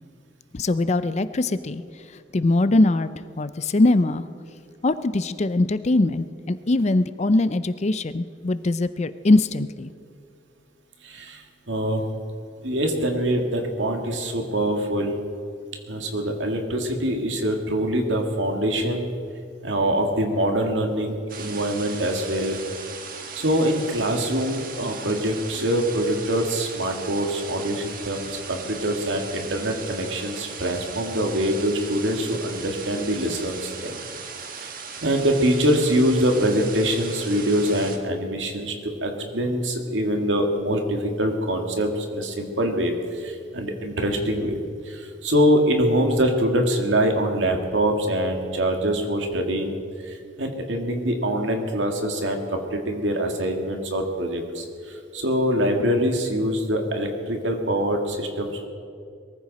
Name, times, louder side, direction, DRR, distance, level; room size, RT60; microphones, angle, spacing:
voice 1, 0.5-1.8 2.3-3.1 3.4-4.3 4.8-9.9, left 2 dB, 35° left, 13 dB, 0.5 m, -21 dB
voice 2, 11.0-12.0 12.6-15.2 15.9-19.1 19.6-22.6 23.3-34.0 34.5-34.7 35.0-44.6 44.9-49.8 50.1-58.7, equal, 75° right, 3 dB, 2.2 m, -24 dB
sound 1, 21.3-38.0, right 5 dB, 50° right, 1.5 m, -38 dB
22.5 x 14.5 x 4.2 m, 2.4 s
head